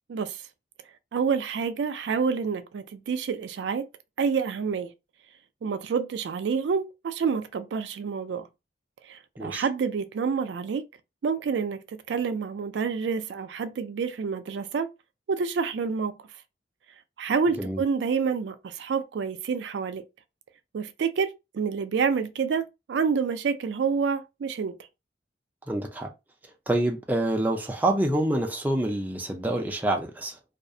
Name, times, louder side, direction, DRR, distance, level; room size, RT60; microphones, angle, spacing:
voice 1, 0.1-0.4 1.1-3.9 4.2-4.9 5.6-8.5 9.1-10.8 11.2-14.9 15.3-16.1 17.2-20.0 20.7-24.7, right 5 dB, 80° right, 0.3 m, -28 dB
voice 2, 25.7-26.1 26.7-30.4, right 1 dB, 10° right, 0.4 m, -26 dB
2.3 x 2.0 x 2.6 m
head